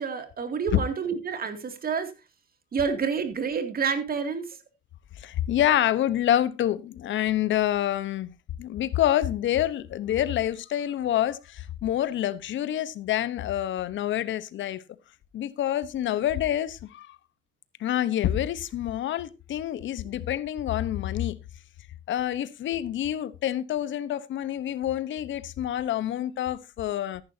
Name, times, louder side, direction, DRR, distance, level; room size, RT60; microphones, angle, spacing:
voice 1, 0.0-2.1 2.7-4.5, right 6 dB, 50° right, 2.5 m, -28 dB
voice 2, 5.2-8.3 8.6-14.8 15.3-17.2 17.8-21.4 22.1-27.2, left 12 dB, 75° left, 1.0 m, -27 dB
14.0 x 11.0 x 2.8 m
cardioid pair, 90°, 20 cm